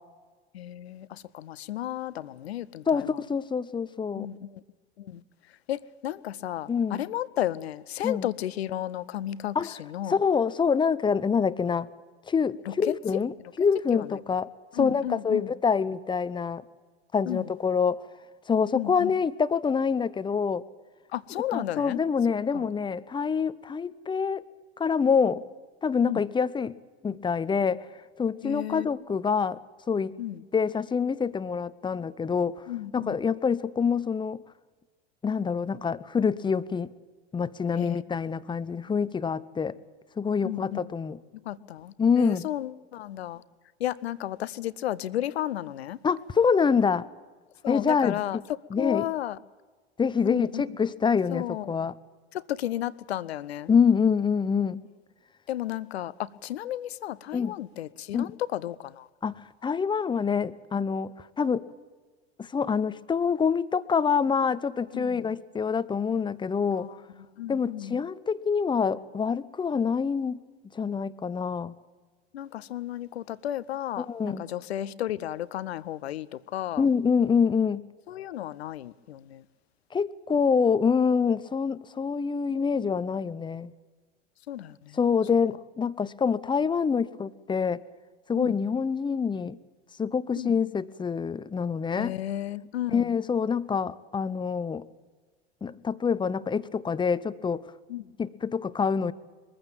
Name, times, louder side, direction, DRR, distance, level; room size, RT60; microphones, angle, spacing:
voice 1, 0.5-3.2 4.2-4.6 5.0-5.2 5.7-10.1 12.7-12.8 13.9-14.2 14.7-15.5 17.3-17.5 18.7-19.1 21.1-22.0 22.5-22.7 26.0-26.2 28.4-28.9 30.2-30.4 32.7-33.2 37.8-38.0 40.4-40.8 41.4-43.4 43.8-46.0 47.6-48.4 48.8-49.4 50.2-50.6 51.3-51.8 52.3-53.7 55.5-59.1 64.9-65.3 66.7-67.0 67.4-68.0 72.3-76.8 78.1-79.4 84.5-85.0 88.3-88.6 90.4-90.5 92.0-93.1 97.9-98.1, left 13 dB, 70° left, 0.8 m, -33 dB
voice 2, 2.9-4.3 6.7-7.0 8.0-8.3 9.5-9.8 10.1-11.9 12.3-14.5 14.7-16.6 17.1-18.1 18.5-20.6 21.5-24.5 24.8-25.4 25.8-26.8 27.0-27.8 28.2-29.6 29.9-30.1 30.5-32.6 32.9-34.4 35.2-36.9 37.3-39.8 40.2-41.2 42.0-42.5 46.0-47.1 47.7-48.4 48.7-49.1 50.0-51.9 53.7-54.8 57.3-57.5 58.1-58.3 59.2-61.7 62.4-66.9 67.5-70.4 70.7-71.7 74.0-74.4 76.8-77.8 79.9-83.7 84.9-87.8 88.3-89.6 90.0-92.1 92.9-94.9 95.6-97.7 98.2-99.1, left 6 dB, 15° left, 0.7 m, -26 dB
22.0 x 15.0 x 9.0 m
figure-of-eight pair, 75°, 33 cm